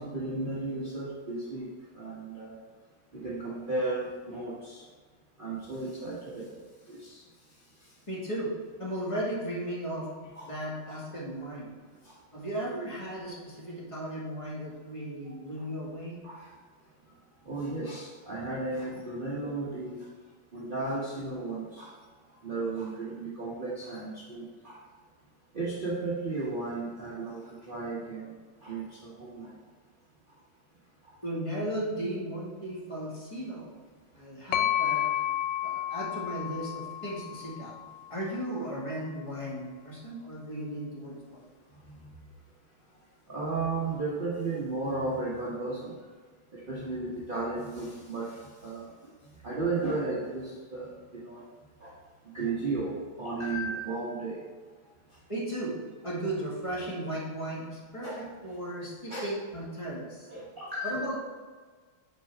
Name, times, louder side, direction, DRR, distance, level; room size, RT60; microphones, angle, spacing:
voice 1, 0.0-2.6 3.1-4.8 5.4-6.6 6.9-7.2 10.4-10.5 12.0-12.1 15.3-15.4 16.2-16.5 17.4-20.0 20.5-21.9 22.4-24.8 25.5-28.3 28.6-29.5 41.9-42.0 43.3-46.0 46.5-49.1 49.4-51.0 51.2-51.4 51.8-51.9 52.3-54.5 58.0-58.3 59.1-59.3 60.3-61.0, right 3 dB, 30° right, -7 dB, 1.1 m, -34 dB
voice 2, 8.1-8.5 8.8-10.1 10.5-11.7 12.3-16.2 31.2-33.8 34.1-35.0 35.6-37.7 38.1-41.4 55.3-55.7 56.0-60.3 60.8-61.3, right 1 dB, 15° left, -5 dB, 1.7 m, -36 dB
sound 1, 34.5-38.3, left 11 dB, 75° left, 1.2 m, -31 dB
9.0 x 5.6 x 3.5 m, 1.5 s
omnidirectional pair, 2.2 m